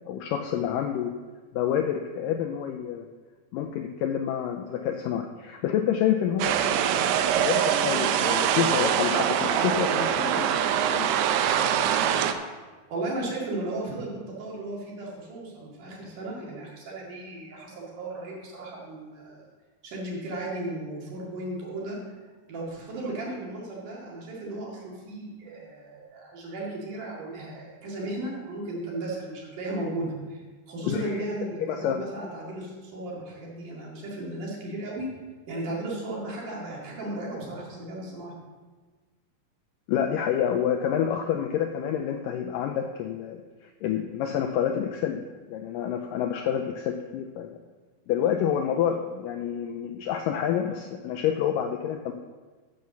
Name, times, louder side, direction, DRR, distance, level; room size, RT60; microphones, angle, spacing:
voice 1, 0.1-1.1 1.5-3.1 3.5-7.0 7.4-11.1 30.9-31.2 31.7-32.0 39.9-45.2 45.5-47.5 48.1-52.1, left 9 dB, 90° left, 5 dB, 1.9 m, -28 dB
sound 1, 6.4-12.3, right 9 dB, 90° right, 2.7 m, -24 dB
voice 2, 12.9-19.5 19.8-22.0 22.5-35.1 35.5-38.3, right 2 dB, 55° right, -4 dB, 3.5 m, -35 dB
9.5 x 7.0 x 6.9 m, 1.4 s
omnidirectional pair, 4.5 m